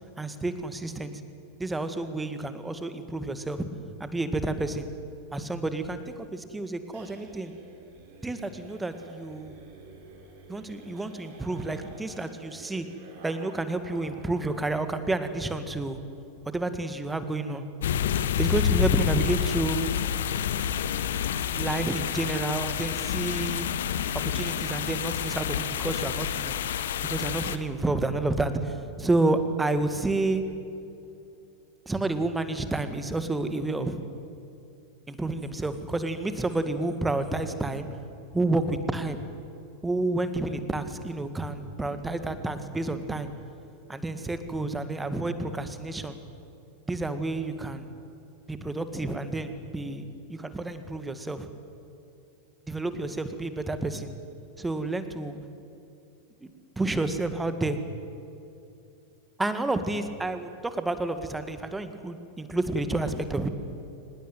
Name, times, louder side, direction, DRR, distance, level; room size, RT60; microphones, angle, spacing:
voice 1, 0.2-1.1 1.6-3.6 4.0-4.9 5.3-7.5 8.2-9.6 10.5-12.9 13.2-16.0 16.4-17.6 18.4-19.9 21.5-23.7 24.1-26.6 27.0-30.4 31.9-34.0 35.1-37.9 38.3-39.2 39.8-43.3 43.9-46.2 46.9-47.9 48.5-50.0 50.3-51.5 52.7-54.1 54.6-55.4 56.4-57.8 59.4-63.5, right 2 dB, 10° right, 10 dB, 1.9 m, -30 dB
sound 1, 5.7-14.8 15.1-15.2 15.5-15.6 15.9-16.4, right 3 dB, 50° right, 5.2 m, -51 dB
sound 2, 17.8-27.6, left 9 dB, 60° left, 1.1 m, -28 dB
24.5 x 20.0 x 9.2 m, 2.7 s
figure-of-eight pair, 90°, 0 cm